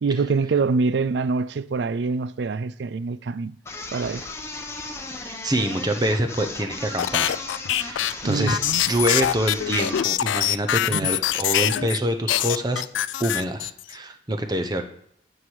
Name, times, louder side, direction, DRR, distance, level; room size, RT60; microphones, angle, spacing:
voice 1, 0.0-3.6 3.9-4.3 8.2-8.8 10.9-11.1, right 4 dB, 65° right, 0.4 m, -25 dB
sound 1, 3.7-10.1, left 3 dB, 15° left, 0.8 m, -36 dB
voice 2, 5.2-7.4 7.8-8.6 8.9-12.8 13.2-14.8, right 1 dB, 20° right, 0.7 m, -26 dB
sound 2, 7.0-12.0 12.3-13.9, left 12 dB, 85° left, 0.4 m, -24 dB
9.3 x 4.8 x 7.7 m
head